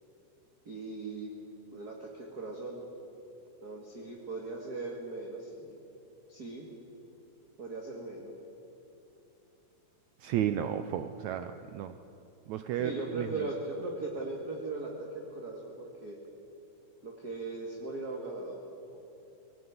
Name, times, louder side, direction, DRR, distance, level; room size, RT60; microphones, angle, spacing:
voice 1, 0.7-1.4 1.7-2.8 3.6-5.8 6.3-6.7 7.6-8.3 12.7-16.2 17.0-18.7, right 3 dB, 35° right, -1 dB, 2.0 m, -39 dB
voice 2, 10.2-11.9 12.5-12.9 13.2-13.3, right 10 dB, 90° right, 10 dB, 1.6 m, -32 dB
19.0 x 18.5 x 9.5 m, 2.8 s
omnidirectional pair, 4.1 m